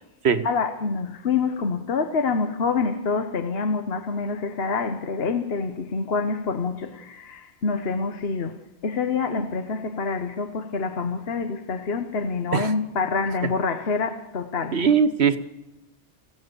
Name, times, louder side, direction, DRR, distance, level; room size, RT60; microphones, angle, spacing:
voice 1, 0.4-14.8, left 4 dB, 60° left, 1.3 m, -26 dB
voice 2, 14.7-15.4, right 6 dB, 70° right, 1.5 m, -20 dB
28.5 x 16.5 x 6.9 m
omnidirectional pair, 1.2 m